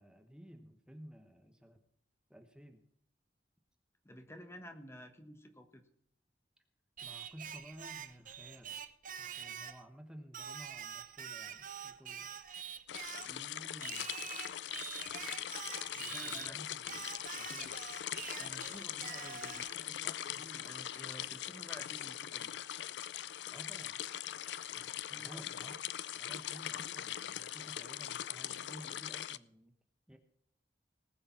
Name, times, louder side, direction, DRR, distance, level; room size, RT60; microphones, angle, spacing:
voice 1, 0.0-1.8 2.3-2.8 7.0-8.9 9.2-12.3 15.9-17.1 17.4-17.9 23.5-24.0 25.1-25.8 26.1-29.7 30.1-30.2, equal, 5° right, 5 dB, 1.1 m, -54 dB
voice 2, 4.0-5.8 13.2-14.1 16.0-16.6 18.4-22.5 24.7-25.4, equal, 15° left, 7 dB, 1.2 m, -52 dB
Singing, 7.0-9.8 10.3-13.4 13.8-16.5 16.9-19.8, right 8 dB, 50° right, 0.8 m, -45 dB
sound 1, 12.9-29.4, left 11 dB, 75° left, 0.4 m, -41 dB
19.5 x 6.6 x 5.7 m, 0.69 s
head